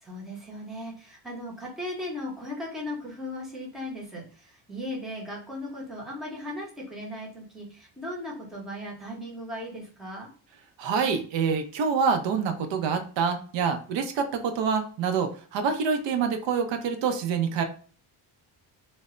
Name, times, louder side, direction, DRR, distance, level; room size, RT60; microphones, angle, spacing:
voice 1, 0.0-10.3, left 1 dB, ahead, -4 dB, 0.5 m, -37 dB
voice 2, 10.8-17.6, right 6 dB, 70° right, 6 dB, 0.5 m, -26 dB
2.1 x 2.0 x 3.5 m, 0.41 s
cardioid pair, 155°, 45 cm